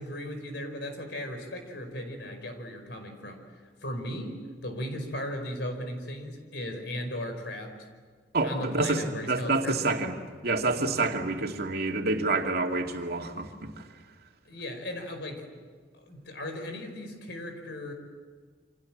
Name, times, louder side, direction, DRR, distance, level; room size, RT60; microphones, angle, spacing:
voice 1, 0.0-3.4 3.8-7.8 8.4-9.8 14.5-15.5 16.0-17.9, left 1 dB, 70° left, 6 dB, 5.2 m, -37 dB
voice 2, 8.3-10.2 10.4-13.7, right 3 dB, 60° right, 2 dB, 2.5 m, -28 dB
28.5 x 27.0 x 7.5 m, 1.5 s
head